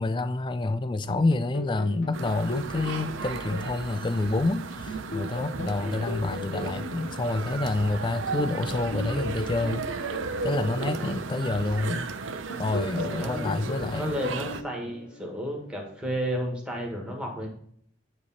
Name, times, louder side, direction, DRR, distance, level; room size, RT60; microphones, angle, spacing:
voice 1, 0.0-12.1 12.6-14.1, left 2 dB, 25° left, 0.3 m, -28 dB
sound 1, 1.1-4.4 4.9-8.1 8.7-12.0 12.5-15.7, left 2 dB, 65° left, 1.3 m, -39 dB
sound 2, 2.1-14.6, right 4 dB, 80° right, 0.5 m, -35 dB
voice 2, 12.9-17.5, equal, 5° right, 1.5 m, -33 dB
9.6 x 3.3 x 4.2 m
head